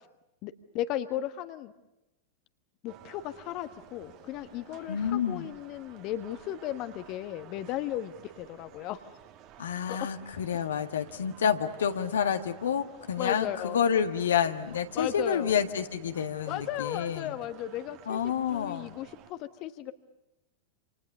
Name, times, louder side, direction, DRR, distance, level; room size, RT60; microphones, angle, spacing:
voice 1, 0.4-1.7 2.8-9.0 9.9-10.0 13.2-13.8 14.9-15.5 16.5-19.9, left 12 dB, 40° left, 10 dB, 1.4 m, -35 dB
sound 1, 2.9-19.3, right 9 dB, 40° right, 2.2 m, -53 dB
voice 2, 4.9-5.5 9.6-17.4 18.1-18.9, left 8 dB, 65° left, 7 dB, 1.6 m, -29 dB
28.5 x 28.0 x 6.8 m, 0.95 s
figure-of-eight pair, 90°, 0 cm